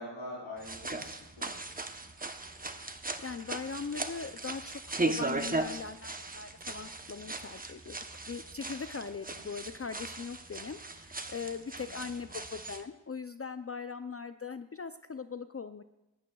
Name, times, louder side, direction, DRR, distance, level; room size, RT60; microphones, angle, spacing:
voice 1, 0.0-2.1 9.3-9.5 11.8-12.4, left 1 dB, 75° left, -7 dB, 4.4 m, -46 dB
sound 1, 0.6-12.8, right 2 dB, 15° right, 0.8 m, -38 dB
voice 2, 3.2-8.0 8.3-15.8, left 5 dB, 30° left, 10 dB, 0.4 m, -40 dB
18.0 x 12.5 x 2.3 m, 0.95 s
cardioid pair, 60°, 50 cm